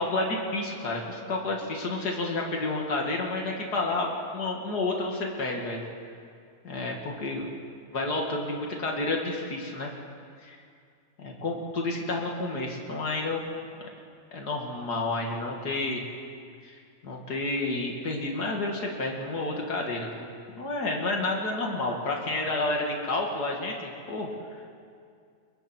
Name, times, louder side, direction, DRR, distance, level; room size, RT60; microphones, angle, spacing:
voice 1, 0.0-5.8 6.6-7.5 7.9-9.9 10.4-10.6 11.2-13.4 14.3-16.0 16.6-16.8 17.0-24.3, left 2 dB, 85° left, 0 dB, 2.8 m, -30 dB
29.5 x 23.0 x 4.6 m, 2.3 s
omnidirectional pair, 1.7 m